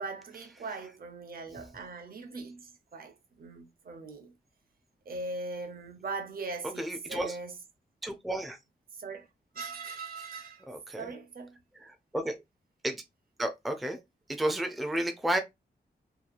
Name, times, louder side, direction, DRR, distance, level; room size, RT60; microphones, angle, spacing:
voice 1, 0.0-4.3 5.1-7.5 9.0-9.3 9.5-10.7 11.0-11.6, right 3 dB, 55° right, 0.6 m, -40 dB
voice 2, 6.8-7.4 8.0-8.6 10.7-11.1 11.7-12.3 12.8-13.0 13.4-14.0 14.3-15.4, right 1 dB, ahead, 0.4 m, -32 dB
2.8 x 2.2 x 2.4 m
wide cardioid pair, 145°, 18 cm